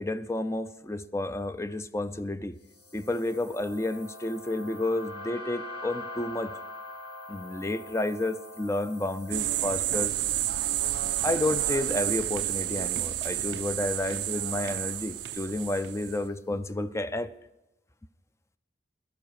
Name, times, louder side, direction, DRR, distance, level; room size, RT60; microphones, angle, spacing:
voice 1, 0.0-2.6 2.9-6.6 7.3-10.1 11.2-17.3, left 2 dB, 15° left, 0.5 m, -31 dB
sound 1, 2.7-16.0, left 2 dB, 70° left, 4.1 m, -45 dB
sound 2, 9.3-16.2, right 14 dB, 70° right, 0.4 m, -30 dB
17.5 x 13.0 x 4.8 m
head